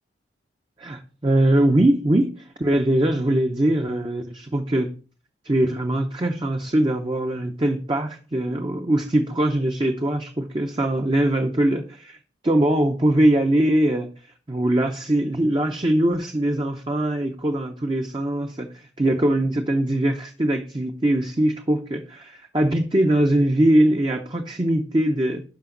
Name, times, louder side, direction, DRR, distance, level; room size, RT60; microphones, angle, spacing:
voice 1, 0.8-4.9 5.4-12.2 12.4-14.1 14.5-25.4, right 1 dB, 25° right, 4 dB, 0.7 m, -22 dB
11.5 x 5.1 x 3.8 m, 0.38 s
head